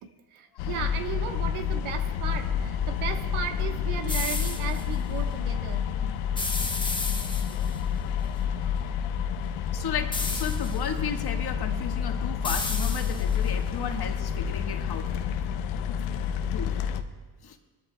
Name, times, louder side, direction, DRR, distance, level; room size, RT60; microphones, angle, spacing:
voice 1, 0.0-5.8, right 8 dB, 75° right, 6 dB, 1.3 m, -35 dB
sound 1, 0.6-17.0, left 8 dB, 90° left, 0.9 m, -29 dB
sound 2, 4.1-4.8 6.4-7.8 10.1-10.9 12.4-13.5, left 3 dB, 10° left, 1.0 m, -33 dB
voice 2, 9.7-15.1 16.5-16.7 17.4-17.6, left 7 dB, 50° left, 3 dB, 1.6 m, -34 dB
21.5 x 13.0 x 2.3 m, 1.3 s
cardioid pair, 100°, 48 cm